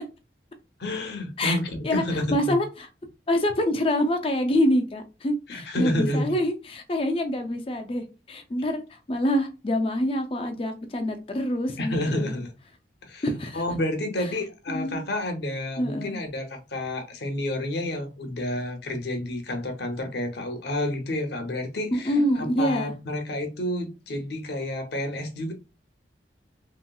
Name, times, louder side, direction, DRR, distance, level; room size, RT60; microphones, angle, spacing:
voice 1, 0.8-2.2 5.5-6.2 11.8-12.5 13.0-13.2 13.5-25.5, left 1 dB, 70° left, 5 dB, 0.8 m, -30 dB
voice 2, 2.3-2.7 3.3-12.3 13.2-13.6 14.2-14.3 14.7-15.0 15.8-16.2 21.9-22.9, left 1 dB, 30° left, 6 dB, 0.4 m, -26 dB
3.0 x 2.9 x 2.3 m, 0.29 s
head